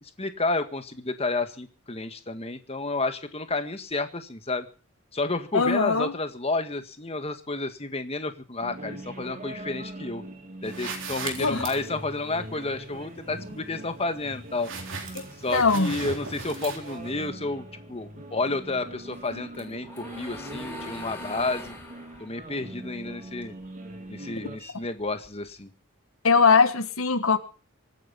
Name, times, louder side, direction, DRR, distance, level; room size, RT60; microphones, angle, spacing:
voice 1, 0.0-4.7 5.1-10.2 10.6-14.7 15.4-21.8 22.2-23.5 24.1-25.7, left 3 dB, 30° left, 9 dB, 1.7 m, -31 dB
voice 2, 5.5-6.1 11.4-11.6 15.1-15.2 15.5-15.9 26.2-27.4, left 4 dB, 70° left, 9 dB, 1.6 m, -21 dB
sound 1, 8.6-24.6, right 1 dB, 35° right, 3.0 m, -42 dB
sound 2, 10.6-17.3, right 4 dB, 60° right, 3.9 m, -40 dB
sound 3, 19.1-23.7 24.0-25.6, left 1 dB, 10° left, 5.8 m, -43 dB
25.0 x 9.2 x 5.7 m, 0.37 s
head